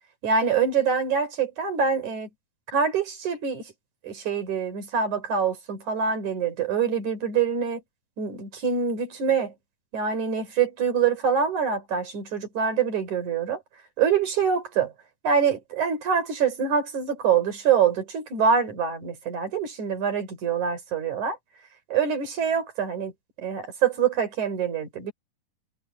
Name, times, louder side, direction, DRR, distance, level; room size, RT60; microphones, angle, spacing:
voice 1, 0.2-2.3 2.7-3.7 4.0-7.8 8.2-9.5 9.9-13.6 14.0-14.9 15.2-21.4 21.9-23.1 23.4-25.1, right 6 dB, 50° right, 5.3 m, -25 dB
omnidirectional pair, 4.7 m